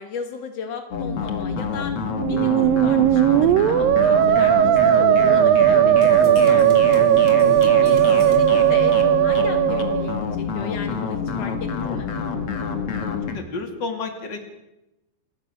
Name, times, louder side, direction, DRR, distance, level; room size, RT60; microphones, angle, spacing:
voice 1, 0.0-1.9 2.2-7.1 7.6-10.2 10.5-12.1, left 6 dB, 80° left, 6 dB, 1.4 m, -35 dB
sound 1, 0.9-13.3, left 5 dB, 50° left, 1.8 m, -27 dB
Musical instrument, 2.1-10.2, right 11 dB, 85° right, 2.0 m, -17 dB
sound 2, 6.0-9.5, right 2 dB, 50° right, 2.5 m, -40 dB
voice 2, 7.8-8.2 12.9-14.5, left 3 dB, 30° left, 5 dB, 2.4 m, -33 dB
29.0 x 16.0 x 6.4 m, 0.93 s
omnidirectional pair, 5.2 m